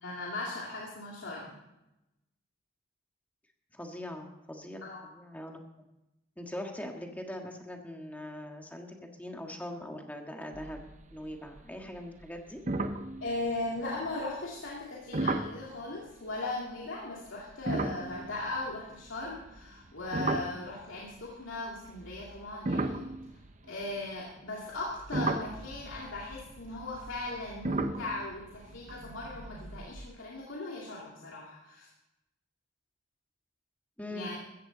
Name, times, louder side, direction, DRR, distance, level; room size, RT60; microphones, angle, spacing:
voice 1, 0.0-1.6 4.8-5.0 13.2-23.0 23.7-31.9 34.1-34.4, left 2 dB, 80° left, -4 dB, 2.5 m, -38 dB
voice 2, 3.7-5.9 6.4-10.8 11.1-12.6 34.0-34.3, left 1 dB, 10° left, 2 dB, 1.7 m, -42 dB
sound 1, 10.5-11.2 11.5-11.9 12.2-12.3 12.7-14.0 15.1-15.6 17.5-21.1 21.9-24.1 24.7-30.1, right 2 dB, 35° right, 0.8 m, -35 dB
15.5 x 14.5 x 4.0 m, 0.93 s
head